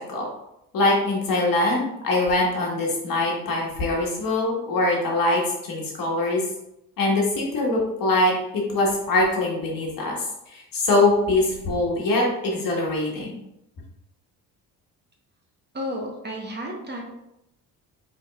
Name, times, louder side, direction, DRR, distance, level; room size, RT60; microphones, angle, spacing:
voice 1, 0.7-5.4 5.7-6.4 7.0-10.1 10.5-13.3, left 2 dB, 55° left, -2 dB, 1.5 m, -23 dB
voice 2, 15.7-17.0, equal, 25° right, 0 dB, 1.0 m, -32 dB
4.8 x 3.6 x 2.4 m, 0.86 s
supercardioid pair, 80°, 39 cm